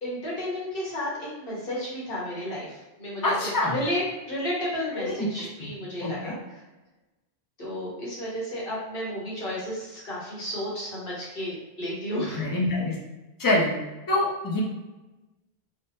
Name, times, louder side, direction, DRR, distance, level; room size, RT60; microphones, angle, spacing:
voice 1, 0.0-3.4 3.6-6.6 7.6-12.5, equal, 60° left, -6 dB, 1.2 m, -32 dB
voice 2, 3.2-3.7 5.0-5.1 5.6-5.7 6.0-6.3 12.2-13.0 13.4-13.7 14.1-14.6, left 2 dB, 25° left, -3 dB, 0.5 m, -25 dB
3.3 x 2.1 x 2.7 m, 1.1 s
omnidirectional pair, 1.1 m